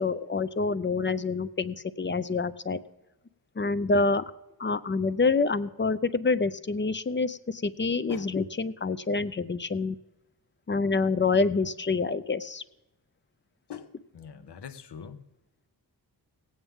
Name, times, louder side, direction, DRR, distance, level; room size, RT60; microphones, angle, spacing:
voice 1, 0.0-2.8 3.6-4.2 4.6-10.0 10.7-12.6, left 4 dB, 30° left, 13 dB, 0.4 m, -27 dB
voice 2, 13.7-15.2, left 7 dB, 80° left, 11 dB, 0.9 m, -42 dB
18.5 x 8.6 x 3.6 m, 0.94 s
wide cardioid pair, 115°, 40 cm